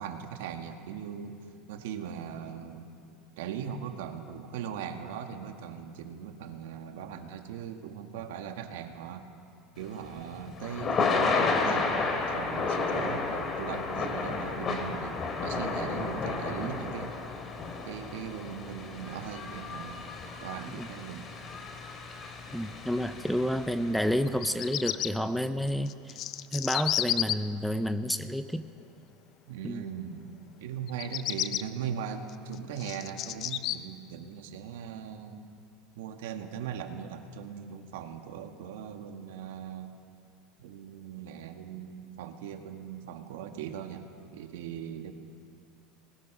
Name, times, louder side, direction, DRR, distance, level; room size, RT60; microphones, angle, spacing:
voice 1, 0.0-1.4 1.7-2.9 3.4-9.3 9.8-15.2 15.4-17.2 17.9-20.1 20.4-21.3 29.5-30.3 30.6-35.5 36.0-40.0 40.6-45.1, right 8 dB, 85° right, 5 dB, 2.0 m, -39 dB
Thunder / Rain, 9.8-24.1, left 4 dB, 30° left, 2.7 m, -32 dB
voice 2, 22.5-25.9 26.5-28.6 29.6-29.8, equal, ahead, 11 dB, 0.7 m, -30 dB
Bird vocalization bird call bird song, 24.3-25.1 25.9-27.3 30.9-31.6 32.3-33.8, left 13 dB, 45° left, 0.7 m, -31 dB
27.0 x 20.5 x 6.3 m, 2.4 s
supercardioid pair, 140°, 0 cm